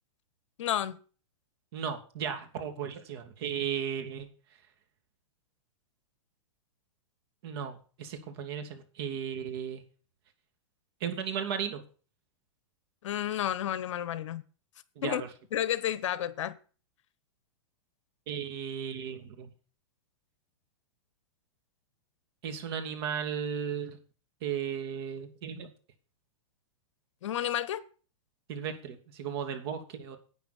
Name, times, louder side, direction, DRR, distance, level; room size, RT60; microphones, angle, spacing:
voice 1, 0.6-1.0 13.0-14.4 15.0-15.2 15.5-16.6 27.2-27.8, left 11 dB, 65° left, 1.1 m, -31 dB
voice 2, 1.7-4.3 7.4-9.8 11.0-11.8 15.0-15.3 18.3-19.5 22.4-24.0 24.4-25.7 28.5-30.2, right 8 dB, 50° right, 2.8 m, -35 dB
11.5 x 9.3 x 4.4 m
hypercardioid pair, 150°, 17 cm